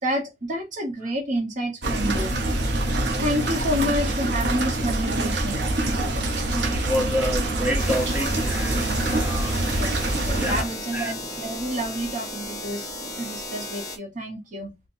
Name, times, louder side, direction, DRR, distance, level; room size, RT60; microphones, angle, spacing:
voice 1, 0.0-2.6 3.2-5.6 9.8-14.7, equal, 45° right, 0.9 m, -29 dB
sound 1, 1.8-10.6, right 1 dB, 70° right, 0.9 m, -25 dB
voice 2, 3.5-3.9 6.0-9.6 10.4-11.2, equal, 10° right, 0.8 m, -30 dB
sound 2, 7.8-14.0, left 1 dB, 20° left, 1.1 m, -35 dB
4.4 x 2.2 x 2.6 m
head